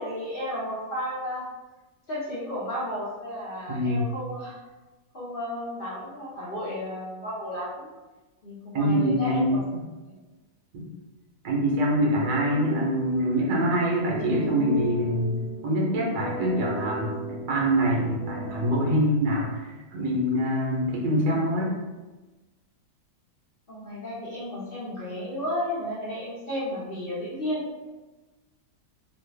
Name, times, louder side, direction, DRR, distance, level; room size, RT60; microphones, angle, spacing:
voice 1, 0.0-1.5 2.1-4.6 5.1-7.9 8.4-9.6 10.1-10.2 23.7-27.7, left 1 dB, 45° left, -8 dB, 0.8 m, -33 dB
voice 2, 3.7-4.1 8.7-9.9 10.7-10.9 11.4-17.2 17.5-21.7, equal, 70° right, -2 dB, 1.3 m, -25 dB
sound 1, 12.0-18.9, left 1 dB, 70° left, 1.1 m, -36 dB
3.1 x 2.4 x 3.3 m, 1.2 s
omnidirectional pair, 1.8 m